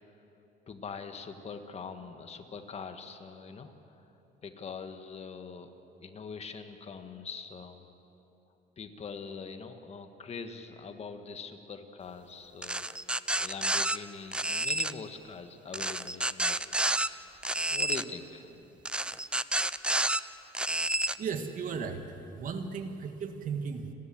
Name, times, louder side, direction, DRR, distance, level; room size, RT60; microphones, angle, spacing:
voice 1, 0.7-4.0 4.4-5.7 6.0-7.9 8.8-12.9 13.4-18.8, left 5 dB, 40° left, 7 dB, 1.7 m, -43 dB
sound 1, 12.6-14.0 14.3-14.9 15.7-17.1 17.4-18.0 18.9-20.2 20.5-21.2, right 1 dB, 5° right, 0.5 m, -29 dB
voice 2, 21.2-23.9, right 5 dB, 50° right, 6 dB, 1.9 m, -36 dB
30.0 x 13.0 x 7.7 m, 3.0 s
cardioid pair, 110°, 17 cm